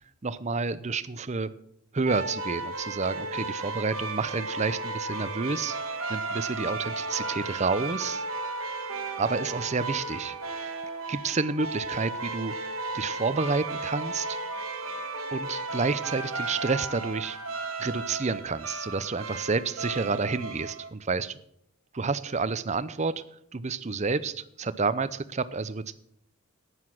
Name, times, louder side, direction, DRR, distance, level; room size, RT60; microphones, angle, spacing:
voice 1, 0.2-1.5 1.9-5.8 6.1-8.2 9.2-10.7 11.1-14.4 15.3-17.4 17.8-21.4 21.9-23.1 23.5-25.9, right 4 dB, 30° right, 15 dB, 0.6 m, -29 dB
sound 1, 2.1-20.9, right 3 dB, 75° right, 1.5 m, -34 dB
11.0 x 9.7 x 5.9 m, 0.72 s
head